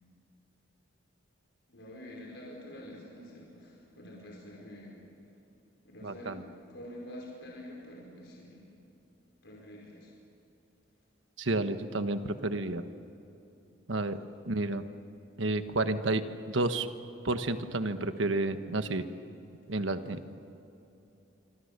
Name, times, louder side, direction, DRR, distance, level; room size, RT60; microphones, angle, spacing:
voice 1, 1.7-5.1 5.8-8.7 9.4-10.1, left 1 dB, 65° left, -3 dB, 5.1 m, -47 dB
voice 2, 6.0-6.4 11.4-12.8 13.9-14.2 14.5-14.8 15.4-16.9 17.2-19.0 19.7-20.2, right 2 dB, 75° right, 9 dB, 1.3 m, -30 dB
27.0 x 25.5 x 6.8 m, 3.0 s
head